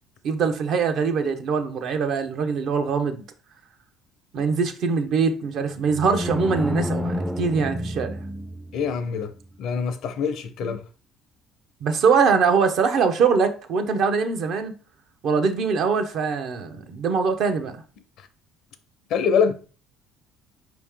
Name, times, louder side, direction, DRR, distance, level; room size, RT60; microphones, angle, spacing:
voice 1, 0.2-3.2 4.3-8.2 10.6-10.7 11.8-14.7 15.2-17.8, right 5 dB, 65° right, 0.8 m, -23 dB
sound 1, 5.9-8.9, left 1 dB, 5° right, 0.4 m, -29 dB
voice 2, 8.7-9.3 9.6-10.8 19.1-19.5, left 6 dB, 70° left, 0.6 m, -24 dB
4.8 x 3.0 x 3.6 m
supercardioid pair, 80°, 0 cm